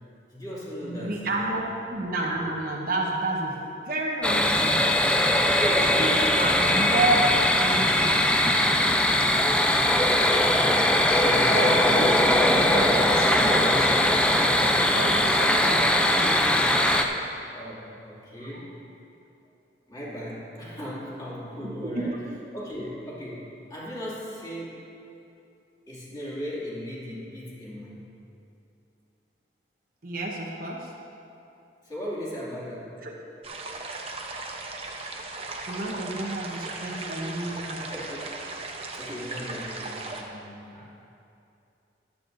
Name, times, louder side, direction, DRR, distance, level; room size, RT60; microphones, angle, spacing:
voice 1, 0.3-1.7 5.3-6.1 7.5-7.7 9.0-9.1 9.5-10.1 10.5-12.2 14.6-15.1 17.5-18.8 19.9-22.2 22.5-23.4 23.7-24.8 25.9-28.1 31.8-32.9 37.9-38.3 38.6-41.0, equal, 20° left, -7 dB, 2.4 m, -37 dB
voice 2, 0.8-1.6 1.9-3.6 3.9-5.0 6.0-7.3 7.6-8.4 11.5-13.9 14.8-16.5 18.4-18.6 21.6-22.2 30.0-30.9 33.0-33.1 35.7-37.9, right 2 dB, 50° right, -1 dB, 1.1 m, -30 dB
sound 1, 4.2-17.0, left 1 dB, 5° left, 0.4 m, -21 dB
sound 2, 33.4-40.2, right 3 dB, 35° right, 0.8 m, -37 dB
14.0 x 11.0 x 2.6 m, 2.7 s
head